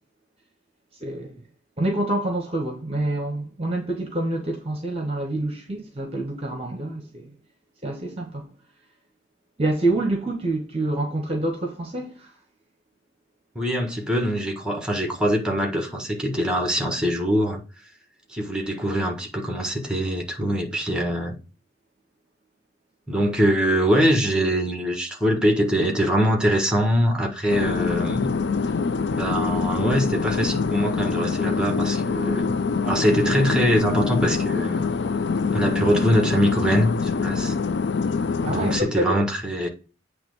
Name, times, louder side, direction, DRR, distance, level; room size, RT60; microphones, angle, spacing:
voice 1, 1.0-1.4 1.8-7.4 7.8-8.5 9.6-12.3 38.4-39.2, right 2 dB, 30° right, 1.1 m, -27 dB
voice 2, 13.5-17.6 18.3-21.4 23.1-28.3 29.1-32.6 32.8-34.9 35.5-37.6 38.5-39.7, equal, 5° right, 1.4 m, -23 dB
sound 1, 27.5-38.8, left 5 dB, 60° left, 0.4 m, -25 dB
8.7 x 3.2 x 6.6 m
head